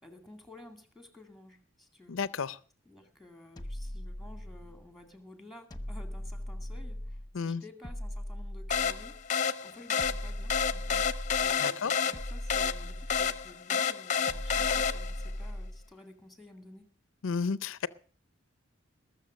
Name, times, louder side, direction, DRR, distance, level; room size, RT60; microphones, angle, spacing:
voice 1, 0.0-2.2 2.9-11.1 11.4-16.9, left 1 dB, ahead, 2.2 m, -53 dB
voice 2, 2.1-2.6 7.3-7.6 11.6-11.9 17.2-17.9, left 5 dB, 85° left, 0.6 m, -32 dB
sound 1, 3.6-4.9 5.7-7.3 7.8-9.3 10.0-11.6 12.1-13.5 14.3-15.9, left 1 dB, 20° left, 1.1 m, -39 dB
sound 2, 8.7-15.3, left 7 dB, 40° left, 0.8 m, -30 dB
20.5 x 7.1 x 6.2 m
head